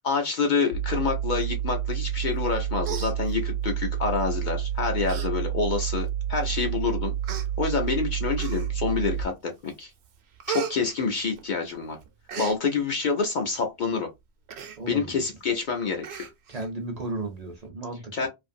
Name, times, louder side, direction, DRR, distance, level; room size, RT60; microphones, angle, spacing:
voice 1, 0.0-7.1 7.6-9.9 10.5-12.0 12.4-14.1 14.9-16.2 18.1-18.3, left 5 dB, 55° left, 0.6 m, -27 dB
sound 1, 0.7-9.2, right 10 dB, 80° left, 0.9 m, -29 dB
Human voice, 2.4-2.5 2.8-3.7 4.5-4.6 5.0-5.3 5.7-5.8 6.6-6.7 7.2-7.5 8.3-8.9 9.4-9.7 10.0-11.7 12.0-12.6 14.5-14.8 15.2-15.3 15.5-15.7 16.0-16.7 17.0-17.1, right 7 dB, 75° right, 0.9 m, -36 dB
voice 2, 14.8-15.1 16.5-18.3, right 2 dB, 45° right, 0.6 m, -34 dB
2.7 x 2.5 x 2.6 m
omnidirectional pair, 1.1 m